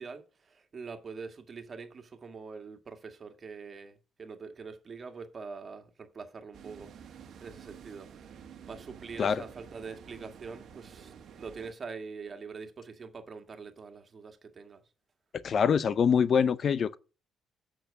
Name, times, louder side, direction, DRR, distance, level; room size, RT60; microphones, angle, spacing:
voice 1, 0.0-14.8, right 5 dB, 45° right, 1.8 m, -44 dB
sound 1, 6.5-11.7, right 7 dB, 65° right, 1.3 m, -50 dB
voice 2, 15.4-17.0, left 7 dB, 55° left, 0.6 m, -24 dB
8.0 x 6.3 x 6.2 m
supercardioid pair, 60°, 0 cm